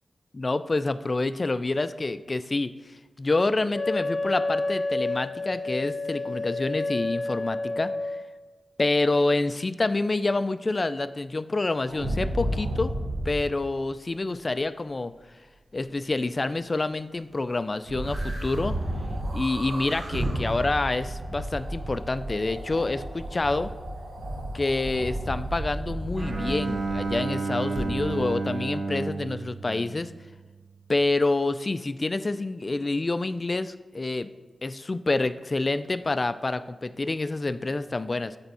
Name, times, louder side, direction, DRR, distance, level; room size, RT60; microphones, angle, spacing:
voice 1, 0.3-7.9 8.8-12.9 13.3-15.1 15.7-18.8 19.3-23.7 24.5-30.1 30.9-34.3 34.6-38.4, left 2 dB, 40° left, 13 dB, 0.3 m, -27 dB
Wind instrument woodwind instrument, 3.7-8.2, left 2 dB, 25° left, 0.8 m, -29 dB
sound 1, 11.9-13.4 17.9-27.1 27.8-27.9, right 1 dB, 85° right, 1.1 m, -32 dB
Bowed string instrument, 26.2-30.5, right 3 dB, 60° right, 0.6 m, -31 dB
8.0 x 3.5 x 4.1 m, 1.3 s
cardioid pair, 60°, 0 cm